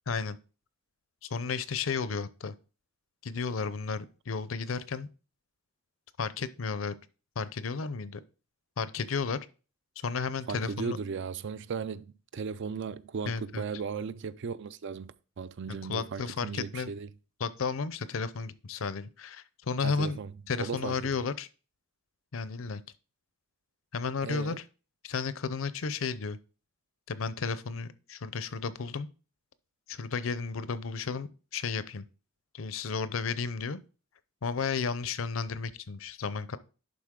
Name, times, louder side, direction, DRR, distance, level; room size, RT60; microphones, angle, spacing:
voice 1, 0.1-0.4 1.2-2.5 3.2-5.1 6.2-6.9 7.4-8.2 8.8-9.4 10.0-11.0 13.3-13.7 15.7-16.9 17.4-20.2 20.5-21.5 22.3-22.8 23.9-24.6 25.0-26.4 27.1-29.1 29.9-32.0 32.5-33.8 34.4-36.6, left 5 dB, 70° left, 0.6 m, -33 dB
voice 2, 10.5-17.1 19.8-20.3 20.6-20.9 24.2-24.6, right 5 dB, 60° right, 0.4 m, -36 dB
11.0 x 4.1 x 3.7 m
head